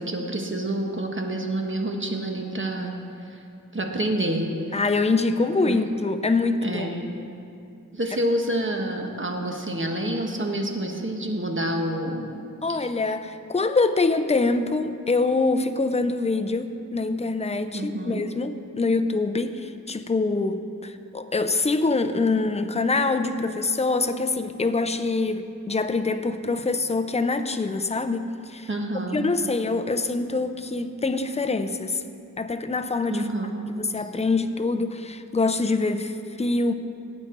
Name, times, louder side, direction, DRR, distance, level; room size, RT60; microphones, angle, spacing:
voice 1, 0.0-2.9 3.3-3.4 3.7-4.5 5.6-5.8 6.6-7.1 7.9-12.3 12.7-12.8 17.7-18.3 28.7-29.3 33.1-33.7, right 1 dB, 35° right, 2 dB, 1.4 m, -28 dB
voice 2, 4.7-7.0 12.6-28.7 29.1-32.0 32.4-33.3 33.8-36.7, left 3 dB, 20° left, 9 dB, 0.5 m, -25 dB
17.0 x 8.7 x 3.9 m, 2.5 s
wide cardioid pair, 70°, 33 cm